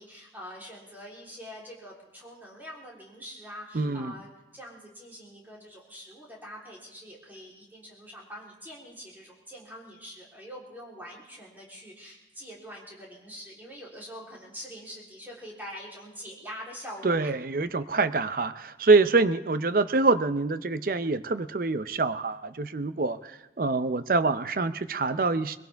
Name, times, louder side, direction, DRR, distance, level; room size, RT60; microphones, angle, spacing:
voice 1, 0.0-17.3, equal, 10° right, -4 dB, 3.5 m, -44 dB
voice 2, 3.7-4.1 17.0-25.6, right 3 dB, 50° right, 12 dB, 0.6 m, -25 dB
22.0 x 17.0 x 3.5 m, 1.0 s
head